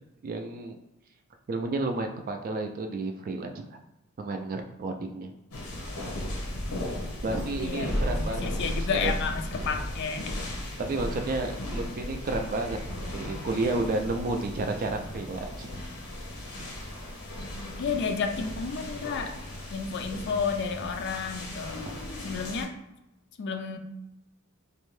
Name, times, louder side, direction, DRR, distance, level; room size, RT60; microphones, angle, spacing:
voice 1, 0.2-0.8 1.5-3.6 4.2-5.3 7.2-9.1 10.8-15.7, right 2 dB, 40° right, 4 dB, 0.3 m, -31 dB
sound 1, 5.5-22.6, left 1 dB, 85° left, 0.7 m, -35 dB
voice 2, 7.6-10.4 17.8-19.4 19.7-21.9 22.2-22.7 23.4-23.8, left 5 dB, 50° left, 6 dB, 0.3 m, -31 dB
2.6 x 2.1 x 3.1 m, 0.92 s
head